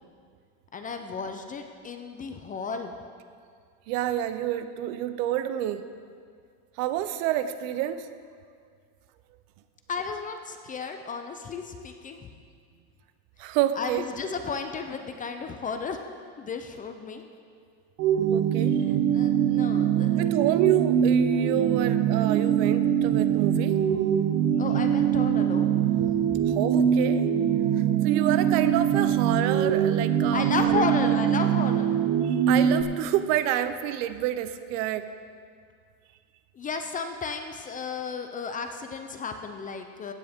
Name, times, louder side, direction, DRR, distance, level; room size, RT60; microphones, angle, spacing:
voice 1, 0.7-2.9 9.9-12.3 13.8-16.0 16.4-17.2 19.1-20.3 24.6-26.6 30.3-31.9 36.5-40.1, left 5 dB, 20° left, 6 dB, 0.4 m, -33 dB
voice 2, 3.9-5.9 6.8-8.1 13.4-14.1 18.3-18.8 20.1-23.8 26.5-27.3 28.0-31.2 32.2-35.1, right 12 dB, 70° right, 12 dB, 0.7 m, -28 dB
sound 1, 18.0-32.8, right 9 dB, 40° right, 0.7 m, -23 dB
15.5 x 9.4 x 3.6 m, 2.1 s
cardioid pair, 140°, 42 cm